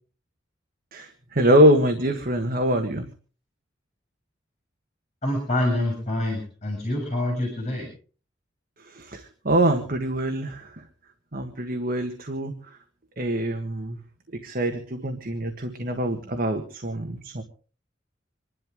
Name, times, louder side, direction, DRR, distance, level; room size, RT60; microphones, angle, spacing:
voice 1, 0.9-3.1 8.8-10.8 11.3-12.8 13.2-14.0 14.4-17.4, right 1 dB, 50° right, 5 dB, 1.6 m, -24 dB
voice 2, 5.2-7.9, left 1 dB, 35° left, 2 dB, 7.4 m, -26 dB
26.5 x 12.0 x 3.7 m, 0.39 s
head